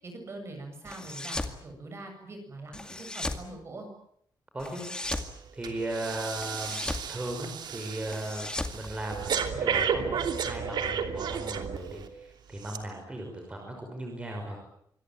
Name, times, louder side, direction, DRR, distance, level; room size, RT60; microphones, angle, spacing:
voice 1, 0.0-3.9, right 2 dB, 35° right, 5 dB, 7.8 m, -43 dB
sound 1, 0.9-1.6 2.7-3.5 4.6-5.3 6.4-7.1 8.1-9.6, left 2 dB, 10° left, 2.1 m, -36 dB
voice 2, 4.5-4.8 5.5-14.6, right 1 dB, 15° right, 2 dB, 5.6 m, -37 dB
Breathing, 5.1-5.3 5.6-12.1 12.6-12.8, right 7 dB, 70° right, 3.0 m, -32 dB
26.5 x 22.5 x 9.1 m, 0.71 s
wide cardioid pair, 175°, 8 cm